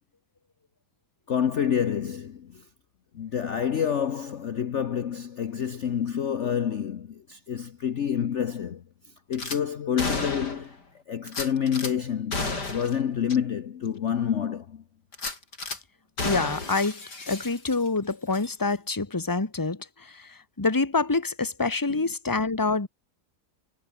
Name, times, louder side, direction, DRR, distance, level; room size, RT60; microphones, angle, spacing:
voice 1, 1.3-2.6 3.1-8.8 9.3-10.8 11.1-14.8 21.9-22.0, left 8 dB, 50° left, 1.1 m, -28 dB
Gunshot gunfire / Glass, 9.3-9.6 10.0-10.7 11.3-11.9 12.3-13.0 13.3-13.4 13.9-14.0 15.1-15.8 16.2-18.0 18.3-18.5, left 3 dB, 80° left, 5.2 m, -32 dB
voice 2, 16.2-17.0 17.3-22.9, left 3 dB, 15° left, 1.5 m, -26 dB
omnidirectional pair, 1.8 m